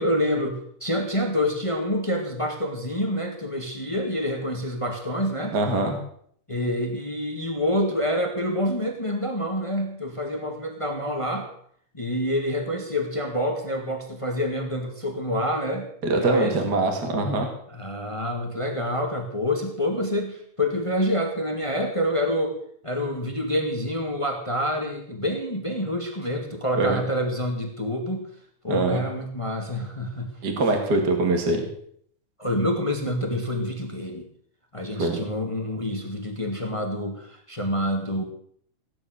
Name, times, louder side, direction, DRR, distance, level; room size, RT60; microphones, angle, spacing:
voice 1, 0.0-5.6 6.5-11.5 11.9-16.6 17.7-22.6 22.8-28.3 28.6-30.3 32.4-34.3 34.7-38.2, equal, 10° left, 3 dB, 1.8 m, -27 dB
voice 2, 5.5-6.0 16.0-17.5 26.8-27.0 28.7-29.0 30.4-31.6 35.0-35.2, right 2 dB, 35° right, 4 dB, 2.6 m, -23 dB
17.0 x 10.5 x 6.5 m, 0.64 s
omnidirectional pair, 3.3 m